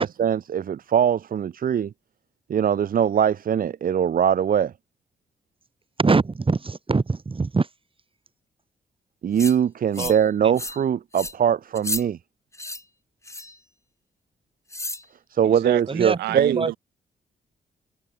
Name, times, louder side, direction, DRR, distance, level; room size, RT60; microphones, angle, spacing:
voice 1, 0.0-1.9 2.5-4.7 9.2-12.2 15.3-16.6, right 8 dB, 60° right, 0.9 m, -22 dB
voice 2, 6.0-7.7 10.0-10.1 15.9-16.2 16.5-16.7, right 4 dB, 30° right, 2.0 m, -23 dB
sound 1, 9.4-9.6 9.9-10.3 10.6-10.8 11.1-11.3 11.8-12.0 12.5-12.8 13.3-13.6 14.7-15.0, left 2 dB, 15° left, 5.9 m, -32 dB
voice 3, 15.4-16.8, right 16 dB, 90° right, 1.6 m, -30 dB
supercardioid pair, 50°, 17 cm